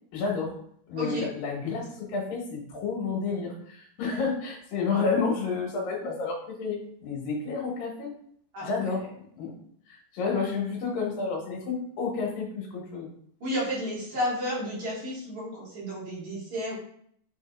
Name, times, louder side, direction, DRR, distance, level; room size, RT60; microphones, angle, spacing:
voice 1, 0.1-0.5 0.9-8.1 8.6-9.0 9.4-9.5 9.9-13.1, left 4 dB, 90° left, -2 dB, 3.3 m, -30 dB
voice 2, 1.0-1.3 8.5-8.9 13.4-16.8, equal, 55° right, -8 dB, 4.6 m, -32 dB
8.6 x 4.1 x 3.7 m, 0.65 s
omnidirectional pair, 3.9 m